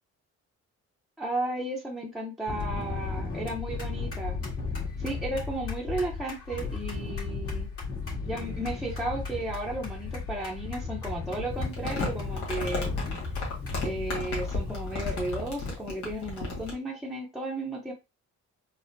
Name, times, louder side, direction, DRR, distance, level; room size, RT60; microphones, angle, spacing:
voice 1, 1.2-4.4 5.0-7.7 8.3-12.9 13.8-17.9, right 1 dB, ahead, -2 dB, 0.7 m, -34 dB
sound 1, 2.5-15.1, left 4 dB, 50° left, 1.9 m, -35 dB
Crumpling crinkling, 11.5-16.7, left 3 dB, 80° left, 1.6 m, -34 dB
4.1 x 2.1 x 2.6 m, 0.26 s
cardioid pair, 90°, 30 cm